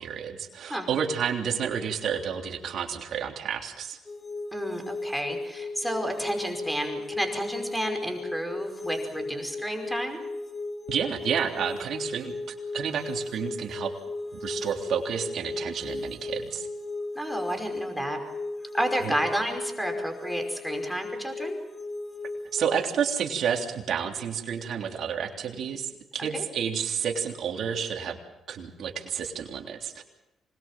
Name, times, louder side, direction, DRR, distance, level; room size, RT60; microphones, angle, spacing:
voice 1, 0.0-4.0 10.9-12.4 12.7-13.9 14.4-16.7 19.0-19.1 22.5-28.2 28.5-30.0, right 7 dB, 65° right, 3 dB, 3.3 m, -30 dB
sound 1, 4.1-22.9, left 2 dB, 25° left, 3.0 m, -36 dB
voice 2, 4.5-10.2 17.2-18.2 18.7-21.6 26.3-26.4, equal, ahead, 4 dB, 5.3 m, -31 dB
26.0 x 21.0 x 7.5 m, 0.92 s
cardioid pair, 90°, 0 cm